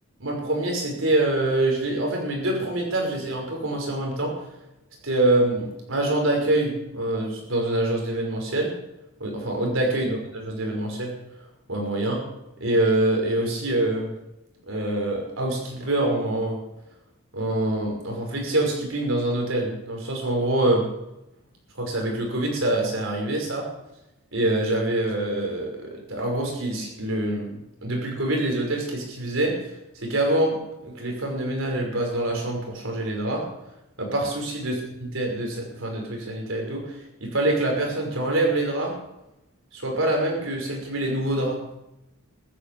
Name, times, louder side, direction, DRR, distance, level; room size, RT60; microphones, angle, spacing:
voice 1, 0.2-4.4 5.0-8.7 9.2-11.1 11.7-12.3 12.6-14.2 14.7-16.6 17.3-20.8 21.8-23.7 24.3-33.5 34.0-34.7 35.1-39.0 39.7-41.8, right 1 dB, 65° right, 1 dB, 5.8 m, -25 dB
15.0 x 13.0 x 7.1 m, 0.90 s
head